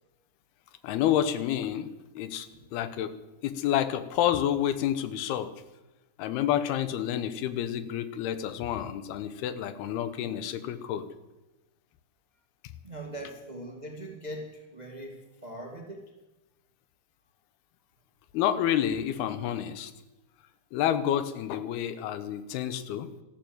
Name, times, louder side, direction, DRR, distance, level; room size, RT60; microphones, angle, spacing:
voice 1, 0.8-2.5 2.7-3.1 3.4-5.5 6.2-11.1 12.6-12.7 18.3-19.9 20.7-23.1, left 10 dB, 80° left, 13 dB, 2.9 m, -29 dB
voice 2, 12.8-16.2, right 1 dB, 55° right, 2 dB, 0.4 m, -41 dB
14.0 x 12.5 x 7.8 m, 1.0 s
omnidirectional pair, 4.5 m